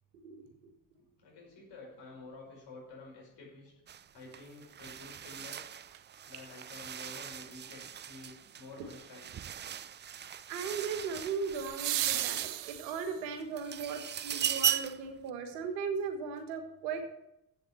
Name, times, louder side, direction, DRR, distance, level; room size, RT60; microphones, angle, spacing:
voice 1, 1.0-3.7 4.1-5.7 6.3-9.4 13.2-13.4 13.9-14.3, left 3 dB, 55° left, -2 dB, 5.2 m, -51 dB
sound 1, 3.9-4.0 4.3-13.0 13.4-15.1, right 9 dB, 25° right, 0.4 m, -38 dB
sound 2, 5.9-6.0 11.5-13.3 15.5-15.6, right 15 dB, 60° right, 0.7 m, -35 dB
voice 2, 10.5-17.0, right 5 dB, 80° right, 6 dB, 1.5 m, -37 dB
8.0 x 7.1 x 8.1 m, 0.84 s
hypercardioid pair, 45°, 49 cm